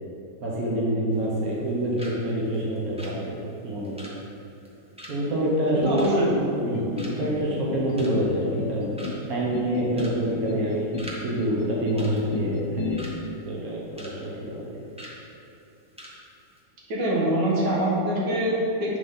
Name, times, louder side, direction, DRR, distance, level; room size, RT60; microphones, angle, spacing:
voice 1, 0.4-3.3 3.6-4.0 5.1-6.0 6.6-8.9 9.3-10.9 11.2-13.0 13.4-14.7, right 1 dB, 55° right, -4 dB, 1.5 m, -26 dB
sound 1, 1.1-1.7 2.0-2.2 2.5-6.7 7.0-7.4 7.7-8.3 8.7-8.8 9.0-9.4 9.9-10.2 10.5-11.2 11.5-11.6 12.0-13.2 13.6-14.2 14.4-14.6 15.0-15.2 15.6-15.7 16.0-16.2 16.4-16.6, equal, 5° right, 0.7 m, -43 dB
sound 2, 5.8-6.5 6.7-7.4 7.7-8.3 8.6-9.2 9.5-10.1 10.5-11.1 11.4-12.0 12.3-13.0, left 5 dB, 85° left, 1.4 m, -33 dB
voice 2, 5.8-6.6 16.9-19.0, right 1 dB, 75° right, -5 dB, 2.1 m, -24 dB
8.3 x 3.9 x 5.6 m, 2.8 s
omnidirectional pair, 1.9 m